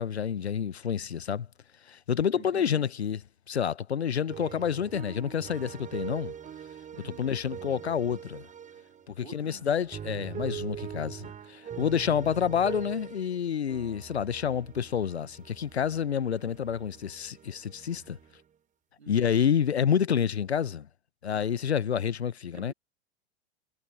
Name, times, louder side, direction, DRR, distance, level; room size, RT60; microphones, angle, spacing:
voice 1, 0.0-1.5 1.9-3.2 3.5-6.3 7.0-8.5 9.1-18.2 19.1-20.9 21.2-22.7, left 8 dB, 85° left, 0.8 m, -28 dB
voice 2, 2.4-2.9 6.9-7.3 9.2-9.7 12.1-12.6 19.0-19.3 22.5-22.7, right 5 dB, 85° right, 2.6 m, -50 dB
sound 1, 4.3-9.2 9.7-13.4 13.7-18.5, right 8 dB, 25° right, 4.4 m, -42 dB
figure-of-eight pair, 95°, 32 cm